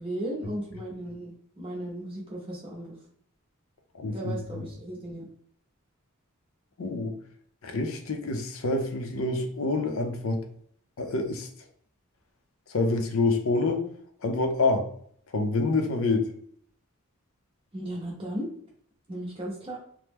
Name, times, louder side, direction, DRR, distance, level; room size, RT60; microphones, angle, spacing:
voice 1, 0.0-3.0 4.1-5.3 17.7-18.5 19.1-19.8, right 1 dB, 25° right, -3 dB, 0.7 m, -36 dB
voice 2, 3.9-4.4 6.8-7.1 7.6-10.4 11.0-11.5 12.7-13.8 14.2-14.9 15.3-16.3, left 3 dB, 70° left, 5 dB, 0.5 m, -27 dB
2.9 x 2.0 x 3.4 m, 0.63 s
head